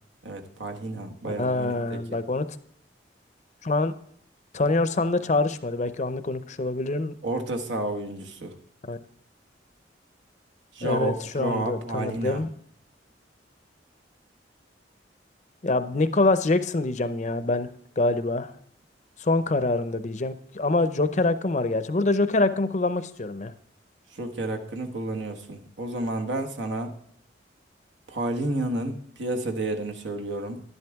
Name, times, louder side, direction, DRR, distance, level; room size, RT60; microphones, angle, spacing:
voice 1, 0.2-2.2 7.2-8.5 10.7-12.5 24.1-27.0 28.1-30.6, right 2 dB, 80° right, 4 dB, 1.4 m, -31 dB
voice 2, 1.3-2.5 3.6-3.9 4.5-7.1 8.9-9.0 10.8-12.5 15.6-17.7 18.0-18.5 19.2-23.5, left 2 dB, 40° left, 12 dB, 0.6 m, -25 dB
11.0 x 11.0 x 3.5 m, 0.62 s
head